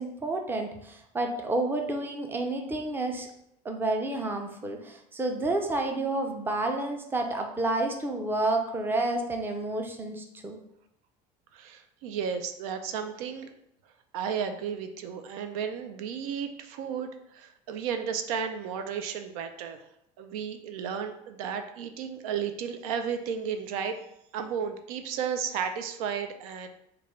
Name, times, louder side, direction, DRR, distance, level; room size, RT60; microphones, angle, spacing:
voice 1, 0.0-3.3 3.6-10.6, right 2 dB, 10° right, 3 dB, 0.5 m, -30 dB
voice 2, 11.5-13.5 14.1-19.9 20.2-24.0 24.3-26.7, right 7 dB, 85° right, 7 dB, 0.4 m, -33 dB
3.2 x 2.2 x 3.7 m, 0.76 s
supercardioid pair, 115°, 18 cm